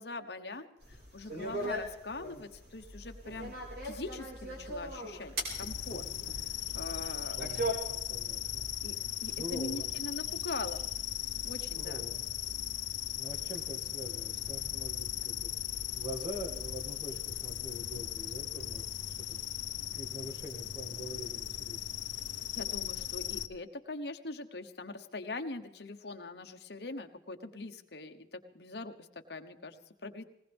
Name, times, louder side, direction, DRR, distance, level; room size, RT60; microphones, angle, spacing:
voice 1, 0.0-6.0 6.4-7.4 8.8-10.8 11.4-12.0 22.5-30.2, left 2 dB, 60° left, 7 dB, 1.1 m, -42 dB
sound 1, 0.8-7.7, right 1 dB, 60° right, 5.3 m, -39 dB
sound 2, 2.8-18.8, left 1 dB, 5° left, 1.1 m, -51 dB
sound 3, 5.5-23.5, left 13 dB, 90° left, 0.7 m, -38 dB
voice 2, 7.3-8.7 9.2-9.9 11.8-12.2 13.2-19.4 19.9-21.9, equal, 20° right, 2 dB, 2.2 m, -44 dB
20.0 x 19.5 x 3.5 m, 0.89 s
head